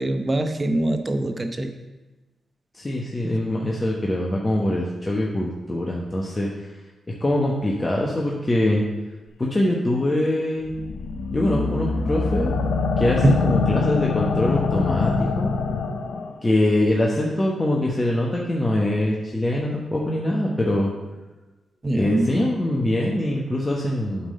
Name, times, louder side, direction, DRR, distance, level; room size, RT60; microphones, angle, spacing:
voice 1, 0.0-1.7 3.2-3.4 13.2-13.5 21.8-22.3, right 1 dB, 30° right, 7 dB, 0.9 m, -23 dB
voice 2, 2.7-6.7 7.2-8.8 9.4-10.7 11.3-12.5 13.0-15.5 16.4-20.9 21.9-24.3, left 1 dB, 25° left, -3 dB, 1.2 m, -23 dB
sound 1, 10.7-16.3, left 4 dB, 75° left, 0.7 m, -24 dB
8.5 x 3.8 x 6.5 m, 1.1 s
cardioid pair, 55°, 0 cm